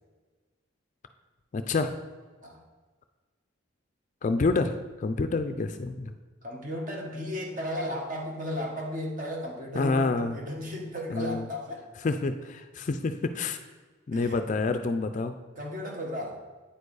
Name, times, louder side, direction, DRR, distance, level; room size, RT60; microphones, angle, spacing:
voice 1, 1.5-1.9 4.2-6.1 9.7-10.4 11.1-11.5 12.0-13.6 14.1-15.4, left 3 dB, 35° left, 9 dB, 0.3 m, -28 dB
voice 2, 6.4-11.8 14.1-14.5 15.6-16.4, left 1 dB, 40° right, 0 dB, 1.2 m, -35 dB
8.8 x 4.6 x 4.7 m, 1.4 s
head